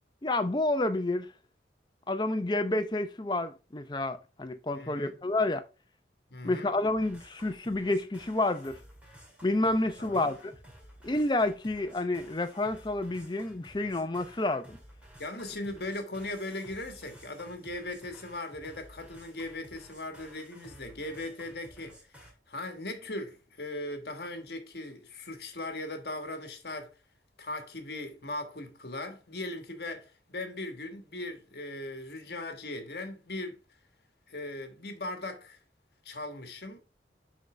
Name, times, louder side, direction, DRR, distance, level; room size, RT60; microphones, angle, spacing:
voice 1, 0.2-1.3 2.1-5.6 6.4-8.7 9.4-10.5 11.0-14.8, left 2 dB, 25° left, 0.6 m, -29 dB
voice 2, 4.7-5.2 6.3-6.7 10.0-10.2 15.2-26.9 27.4-33.6 34.3-35.6 36.0-36.8, left 2 dB, 60° left, 1.4 m, -39 dB
sound 1, 6.9-22.3, equal, 5° right, 2.0 m, -54 dB
10.0 x 4.0 x 3.3 m
head